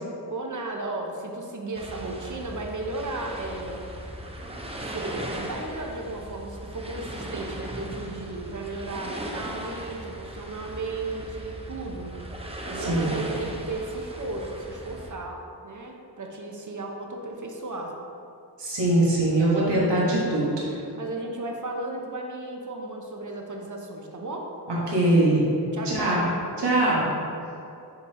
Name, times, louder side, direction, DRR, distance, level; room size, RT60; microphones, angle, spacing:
voice 1, 0.3-3.8 4.8-12.2 12.7-18.0 20.2-20.4 20.6-24.5 25.7-26.3, right 2 dB, 45° right, 1 dB, 0.8 m, -35 dB
sound 1, 1.8-15.1, right 1 dB, 15° right, 0.6 m, -38 dB
voice 2, 12.8-13.1 18.6-20.5 24.7-25.5 25.8-26.2 26.6-27.1, right 1 dB, 85° right, -6 dB, 1.4 m, -22 dB
6.8 x 3.3 x 4.2 m, 2.6 s
wide cardioid pair, 75°, 41 cm